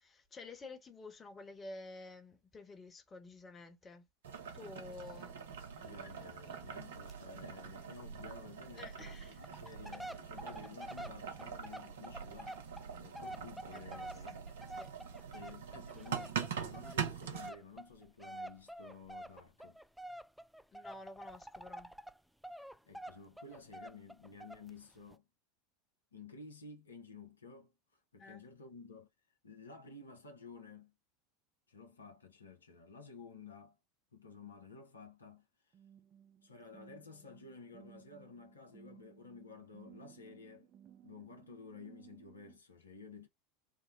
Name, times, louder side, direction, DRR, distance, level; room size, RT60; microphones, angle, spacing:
voice 1, 0.0-4.1 4.5-5.4 6.4-6.6 8.8-9.4 13.7-14.1 14.8-14.9 20.7-21.9 28.2-28.4, left 3 dB, 25° left, 1.1 m, -51 dB
Boiling, 4.2-17.5, right 7 dB, 70° right, 0.7 m, -44 dB
voice 2, 5.7-14.4 15.3-19.8 22.8-25.3 26.1-29.1 29.4-30.9 31.7-33.8 34.1-35.7 36.4-40.7 41.0-43.3, left 4 dB, 80° left, 0.8 m, -53 dB
sound 1, 5.8-6.0 6.2-6.3 6.6-6.8 7.1-7.2 7.5-7.6 8.2-8.3 8.8-8.9 9.3-22.2 22.4-24.7 25.1-25.2, right 1 dB, ahead, 0.4 m, -48 dB
sound 2, 35.7-42.6, right 9 dB, 35° right, 0.9 m, -60 dB
4.7 x 2.2 x 3.3 m
figure-of-eight pair, 80°, 0 cm